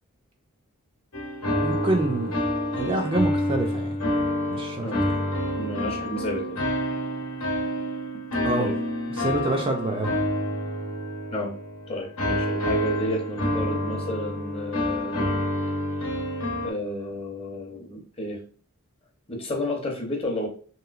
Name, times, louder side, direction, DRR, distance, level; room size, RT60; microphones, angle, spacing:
sound 1, 1.1-16.7, equal, 85° left, 0.9 m, -28 dB
voice 1, 1.6-2.4 2.7-4.0 4.5-5.2 8.4-8.7 9.1-10.1, right 2 dB, 25° right, 2 dB, 0.3 m, -27 dB
voice 2, 5.6-6.6 8.6-8.7 11.3-11.5 11.9-15.4 16.6-18.4 19.3-20.5, left 1 dB, 25° left, 1 dB, 0.6 m, -31 dB
3.0 x 3.0 x 2.4 m, 0.42 s
head